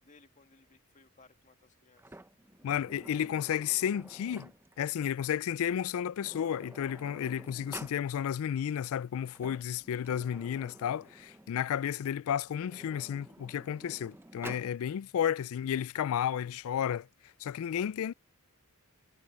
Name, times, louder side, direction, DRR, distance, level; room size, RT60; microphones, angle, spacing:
voice 1, 0.0-2.2 10.3-10.7, left 3 dB, 35° left, 1.8 m, -62 dB
Sliding door, 2.0-4.8 5.8-5.9 6.2-8.0 9.1-11.7 12.4-14.7, right 1 dB, 10° right, 0.7 m, -50 dB
voice 2, 2.6-4.5 4.8-17.1 17.4-18.1, left 9 dB, 70° left, 0.3 m, -32 dB
head